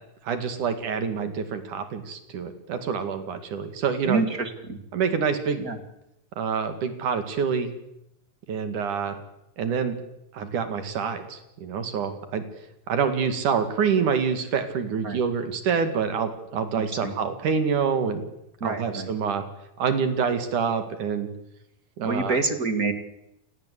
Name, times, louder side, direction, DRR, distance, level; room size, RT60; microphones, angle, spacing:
voice 1, 0.3-4.2 4.9-5.6 6.4-7.7 8.5-9.2 9.6-10.0 10.3-12.4 12.9-18.2 18.6-19.4 19.8-21.3 22.0-22.4, right 6 dB, 65° right, 9 dB, 3.6 m, -26 dB
voice 2, 4.1-4.8 5.6-5.8 15.0-15.2 17.0-17.1 18.6-19.1 22.0-22.9, right 4 dB, 30° right, 8 dB, 1.8 m, -27 dB
28.0 x 19.5 x 8.4 m, 0.83 s
omnidirectional pair, 4.0 m